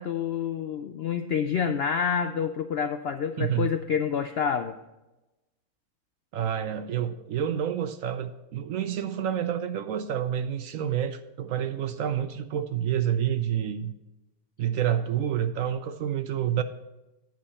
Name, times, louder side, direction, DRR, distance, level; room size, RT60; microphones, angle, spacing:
voice 1, 0.0-4.8, left 7 dB, 85° left, 8 dB, 0.5 m, -28 dB
voice 2, 3.4-3.7 6.3-13.9 14.6-16.6, right 9 dB, 70° right, 11 dB, 0.9 m, -28 dB
9.1 x 8.5 x 4.2 m, 1.0 s
omnidirectional pair, 1.6 m